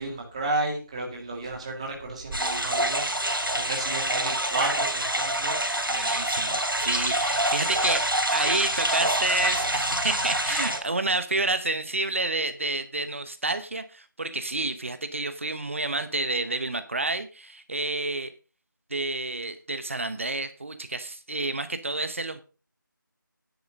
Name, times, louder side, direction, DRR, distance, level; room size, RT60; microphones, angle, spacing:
voice 1, 0.0-3.0 3.5-5.6, right 2 dB, 15° right, 0 dB, 2.0 m, -32 dB
sound 1, 2.3-10.8, right 1 dB, 85° right, 4.5 m, -26 dB
voice 2, 5.9-18.3 18.9-22.4, right 2 dB, 35° right, 11 dB, 1.0 m, -29 dB
10.5 x 7.9 x 5.1 m, 0.34 s
figure-of-eight pair, 170°, 11 cm